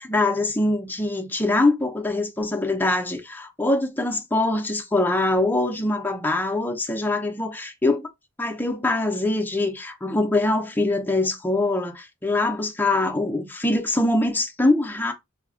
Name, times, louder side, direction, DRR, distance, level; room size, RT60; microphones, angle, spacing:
voice 1, 0.0-8.0 8.4-15.1, left 2 dB, 10° left, 0.5 m, -23 dB
4.8 x 2.2 x 2.4 m
head